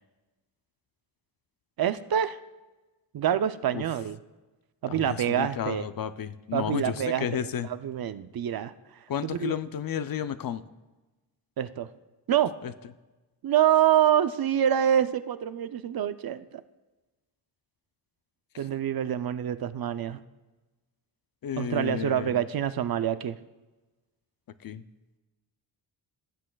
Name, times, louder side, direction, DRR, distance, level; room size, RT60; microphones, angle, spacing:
voice 1, 1.8-2.4 3.1-4.2 4.8-5.9 6.5-8.7 9.2-9.6 11.6-11.9 12.3-12.5 13.4-16.6 18.6-20.2 21.6-23.4, right 10 dB, 55° right, 13 dB, 0.5 m, -26 dB
voice 2, 4.9-7.7 9.1-10.6 21.4-22.4 24.6-24.8, left 9 dB, 50° left, 13 dB, 0.5 m, -32 dB
17.5 x 7.5 x 2.3 m, 1.2 s
cardioid pair, 70°, 45 cm